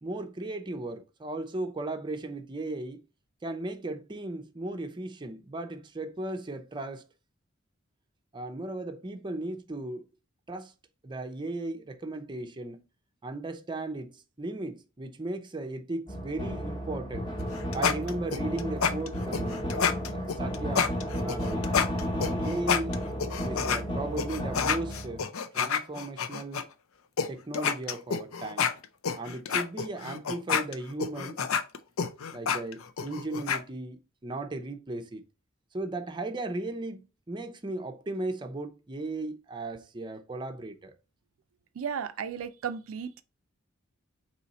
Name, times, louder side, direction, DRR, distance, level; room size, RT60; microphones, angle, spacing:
voice 1, 0.0-3.0 3.4-7.0 8.3-10.1 10.5-10.7 11.0-12.8 13.2-17.3 17.7-19.7 20.1-20.9 21.2-21.7 22.2-22.9 23.4-25.3 25.5-26.6 27.3-28.7 29.2-31.4 32.3-35.2 35.7-40.9, right 2 dB, 20° right, 0.5 m, -36 dB
sound 1, 16.1-25.2, equal, 25° left, 1.0 m, -33 dB
sound 2, 17.4-23.8 24.2-26.6 27.2-27.3 27.5-33.6, left 6 dB, 85° left, 0.5 m, -29 dB
voice 2, 41.7-43.2, right 7 dB, 75° right, 0.4 m, -34 dB
4.1 x 3.1 x 4.0 m
head